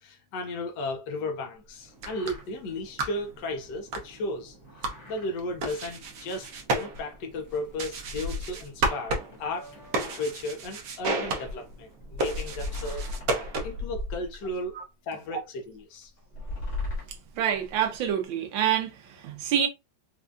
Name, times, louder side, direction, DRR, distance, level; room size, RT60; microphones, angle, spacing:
voice 1, 0.0-4.6 5.1-9.7 10.0-13.1 13.6-14.7 15.1-16.1, left 2 dB, 70° left, 1.2 m, -34 dB
sound 1, 1.7-1.8 1.9-2.5 2.8-2.9 3.2-3.3 4.6-5.3 5.6-5.7 6.9-7.0 7.3-8.9 9.3-10.4 11.2-14.7 15.3-15.4 16.2-18.1, left 2 dB, 45° left, 1.2 m, -37 dB
sound 2, 1.9-13.9, right 2 dB, 60° right, 1.1 m, -34 dB
voice 2, 17.3-19.7, right 9 dB, 85° right, 1.6 m, -27 dB
4.5 x 2.3 x 2.5 m
omnidirectional pair, 2.1 m